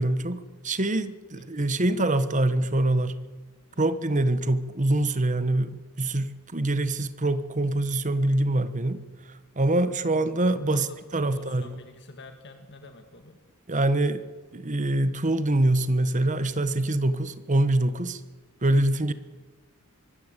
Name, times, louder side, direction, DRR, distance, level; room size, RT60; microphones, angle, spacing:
voice 1, 0.0-3.2 3.8-9.0 9.6-10.9 11.1-11.7 13.7-14.3 14.5-18.2 18.6-19.1, right 1 dB, 35° right, 13 dB, 1.3 m, -24 dB
voice 2, 1.3-1.8 2.3-2.4 3.7-3.8 10.7-13.4, left 2 dB, 55° left, 6 dB, 1.9 m, -47 dB
24.0 x 15.0 x 9.1 m, 1.3 s
head